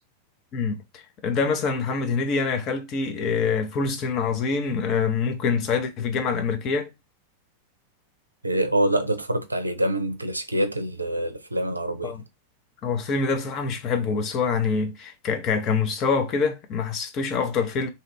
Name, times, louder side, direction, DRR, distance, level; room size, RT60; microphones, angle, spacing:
voice 1, 0.5-6.9 12.0-12.2 12.8-17.9, left 5 dB, 35° left, 0.7 m, -25 dB
voice 2, 8.4-12.1, right 1 dB, 85° right, 0.4 m, -25 dB
2.8 x 2.4 x 3.2 m
figure-of-eight pair, 90°, 0 cm